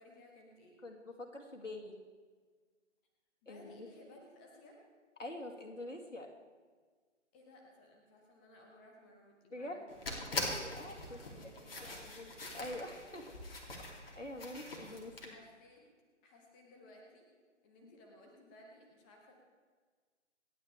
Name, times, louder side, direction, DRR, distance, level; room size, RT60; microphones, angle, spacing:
voice 1, 0.0-0.8 3.4-4.8 7.3-12.0 15.2-15.8 16.2-17.3 17.6-19.3, left 1 dB, 5° left, 1 dB, 0.7 m, -59 dB
voice 2, 0.8-2.0 3.5-3.9 5.2-6.3 9.5-9.8 10.6-11.2 12.0-13.2 14.2-15.4 17.8-17.9, left 1 dB, 85° left, 2 dB, 2.4 m, -45 dB
sound 1, 9.9-15.3, left 2 dB, 50° left, 2.7 m, -43 dB
26.0 x 8.9 x 3.3 m, 1.5 s
figure-of-eight pair, 145°, 37 cm